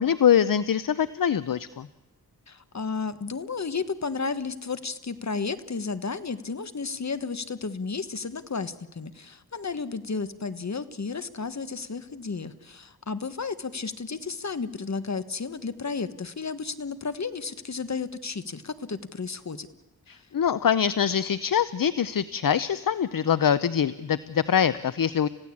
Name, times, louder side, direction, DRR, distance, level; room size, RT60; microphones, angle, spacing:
voice 1, 0.0-1.9 20.1-25.3, left 8 dB, 65° left, 16 dB, 0.7 m, -24 dB
voice 2, 2.5-19.7 20.1-20.2, left 4 dB, 50° left, 13 dB, 1.5 m, -33 dB
30.0 x 16.0 x 8.6 m, 1.1 s
wide cardioid pair, 65°, 36 cm